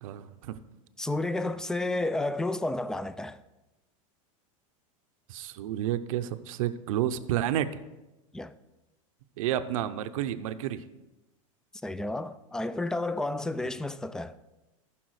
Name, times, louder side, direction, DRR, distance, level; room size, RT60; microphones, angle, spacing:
voice 1, 0.0-0.6 5.3-7.7 9.4-10.9, right 11 dB, 75° right, 0.7 m, -30 dB
voice 2, 1.0-3.4 8.3-8.6 11.8-14.4, left 2 dB, 5° left, 0.4 m, -31 dB
14.5 x 5.9 x 4.8 m
supercardioid pair, 115°, 18 cm